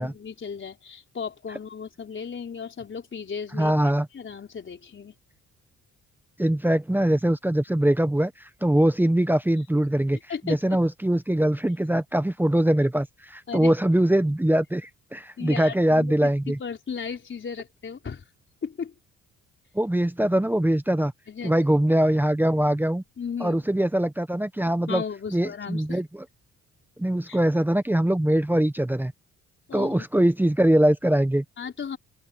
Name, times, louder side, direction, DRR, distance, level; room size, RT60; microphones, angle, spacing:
voice 1, 0.0-3.8 4.1-5.1 10.3-10.6 13.5-13.7 15.4-18.2 18.6-18.9 21.3-21.5 23.2-23.6 24.9-26.0 27.3-27.4 29.7-30.0 31.6-32.0, left 6 dB, 40° left, 4.3 m, -35 dB
voice 2, 3.5-4.1 6.4-10.2 10.4-16.6 19.7-21.1 21.4-23.0 23.4-25.0 25.3-26.0 27.0-29.1 29.7-31.4, right 1 dB, 5° right, 1.1 m, -22 dB
open air
cardioid pair, 90°, 30 cm